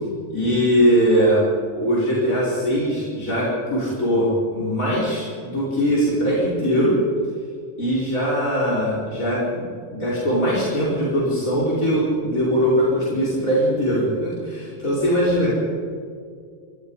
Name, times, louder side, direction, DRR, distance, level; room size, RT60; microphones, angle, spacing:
voice 1, 0.3-1.4 1.8-6.9 7.8-9.6 9.9-15.5, equal, 90° left, -7 dB, 5.6 m, -21 dB
24.5 x 19.5 x 5.6 m, 2.2 s
omnidirectional pair, 1.4 m